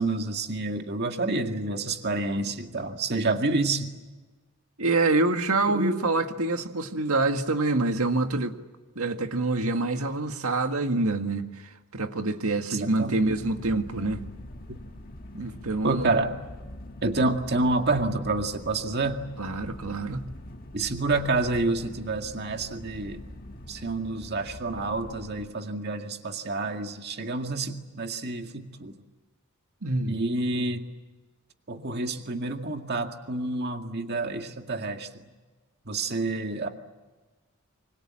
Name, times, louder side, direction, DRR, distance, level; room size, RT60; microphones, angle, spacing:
voice 1, 0.0-3.9 5.7-6.0 12.7-13.3 14.7-14.8 15.8-16.4 17.0-19.2 20.7-23.2 23.7-28.9 30.1-30.9 31.7-35.1 35.9-36.7, right 2 dB, 50° right, 2.1 m, -28 dB
voice 2, 4.8-8.6 9.0-11.5 11.9-14.2 15.3-16.1 19.4-20.2 29.8-30.2 31.7-31.9, right 2 dB, 75° right, 1.9 m, -26 dB
sound 1, 13.2-25.5, left 1 dB, 40° left, 1.7 m, -43 dB
26.5 x 25.0 x 7.7 m
head